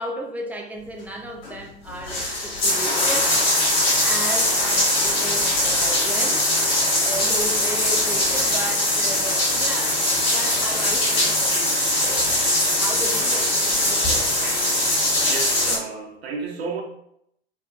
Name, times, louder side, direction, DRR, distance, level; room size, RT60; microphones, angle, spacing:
voice 1, 0.0-3.3 3.7-6.5 7.0-12.3 12.6-14.2, right 1 dB, 5° right, 0 dB, 0.4 m, -34 dB
sound 1, 1.4-1.5 1.9-15.8, left 1 dB, 65° left, 1.4 m, -21 dB
voice 2, 15.2-16.8, right 4 dB, 75° right, 1 dB, 0.6 m, -32 dB
3.5 x 2.4 x 2.4 m, 0.74 s
figure-of-eight pair, 75°, 31 cm